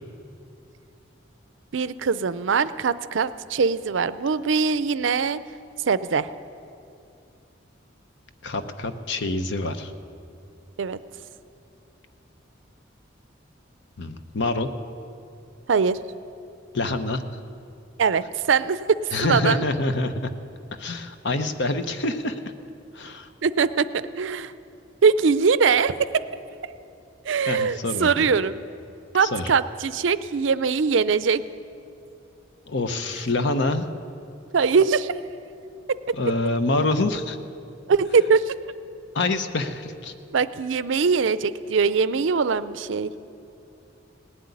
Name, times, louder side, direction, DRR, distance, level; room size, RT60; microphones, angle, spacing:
voice 1, 1.7-5.4 5.9-6.3 10.8-11.0 15.7-16.0 18.0-19.6 23.4-23.9 24.2-24.5 25.0-26.2 27.3-28.6 29.1-31.4 34.5-35.1 35.9-36.1 37.9-38.5 40.3-43.1, right 5 dB, 75° right, 15 dB, 0.5 m, -22 dB
voice 2, 8.4-9.9 14.0-14.7 16.7-17.4 19.1-20.3 20.7-22.4 22.9-23.3 27.5-28.3 29.2-29.5 32.7-33.9 36.1-37.4 39.1-40.1, left 2 dB, 65° left, 9 dB, 0.8 m, -26 dB
18.5 x 7.9 x 9.7 m, 2.6 s
head